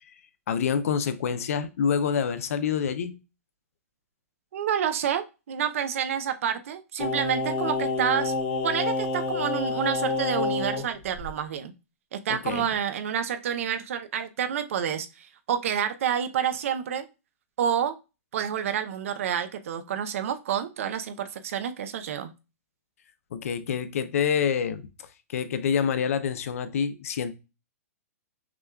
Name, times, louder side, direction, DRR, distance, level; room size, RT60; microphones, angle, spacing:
voice 1, 0.5-3.2 12.3-12.7 23.3-24.8 25.3-27.3, left 7 dB, 70° left, 0.6 m, -27 dB
voice 2, 4.5-8.3 8.6-11.7 12.1-17.1 17.6-18.0 18.3-22.3, right 9 dB, 65° right, 0.6 m, -29 dB
Singing, 7.0-10.9 11.2-11.3, left 3 dB, 35° left, 1.0 m, -28 dB
5.9 x 2.3 x 2.3 m
hypercardioid pair, 150°, 8 cm